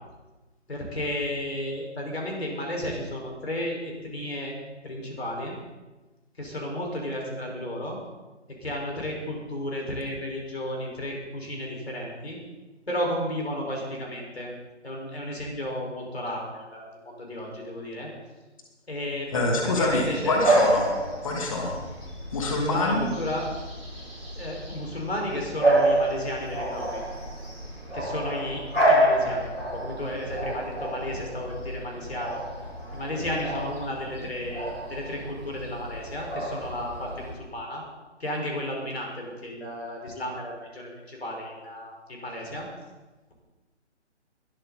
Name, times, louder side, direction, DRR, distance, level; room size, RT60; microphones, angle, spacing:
voice 1, 0.7-4.6 4.8-5.5 6.4-8.0 8.6-12.4 12.9-14.5 14.8-16.8 17.2-18.1 18.9-20.4 22.6-23.5 24.4-27.0 27.9-32.4 32.9-37.8 38.2-42.7, left 1 dB, 60° left, 0 dB, 5.3 m, -33 dB
voice 2, 19.3-20.9 21.2-21.8 22.3-23.1, left 2 dB, 30° left, 0 dB, 2.4 m, -25 dB
Bark / Bird vocalization bird call bird song, 19.8-37.3, right 1 dB, 85° left, 5.9 m, -29 dB
21.0 x 12.0 x 4.2 m, 1.1 s
figure-of-eight pair, 150°, 36 cm